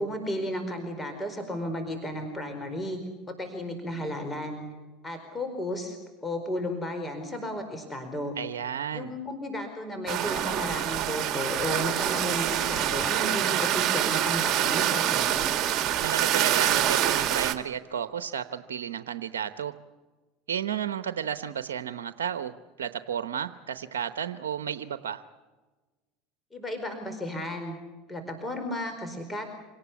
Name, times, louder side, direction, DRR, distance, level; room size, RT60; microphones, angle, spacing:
voice 1, 0.0-3.0 3.3-4.6 5.0-8.3 8.9-15.6 26.5-27.8 28.1-29.6, left 1 dB, 15° left, 6 dB, 4.6 m, -33 dB
voice 2, 8.4-9.1 16.0-19.7 20.5-25.2, right 8 dB, 85° right, 11 dB, 0.8 m, -33 dB
sound 1, 10.1-17.5, right 11 dB, 45° right, 2.0 m, -26 dB
26.5 x 18.5 x 8.5 m, 1.3 s
hypercardioid pair, 90°, 0 cm